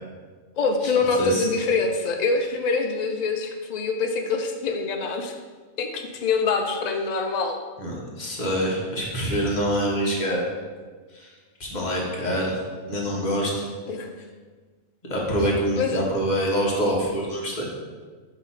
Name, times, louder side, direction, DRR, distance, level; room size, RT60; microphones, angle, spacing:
voice 1, 0.6-5.4 5.8-7.6 13.9-14.2 15.8-16.0, left 4 dB, 90° left, 4 dB, 0.3 m, -25 dB
voice 2, 7.8-10.4 11.1-11.3 11.6-12.6 12.9-13.7 15.1-17.6, equal, 35° left, -3 dB, 1.3 m, -25 dB
5.7 x 3.0 x 5.6 m, 1.4 s
omnidirectional pair, 1.4 m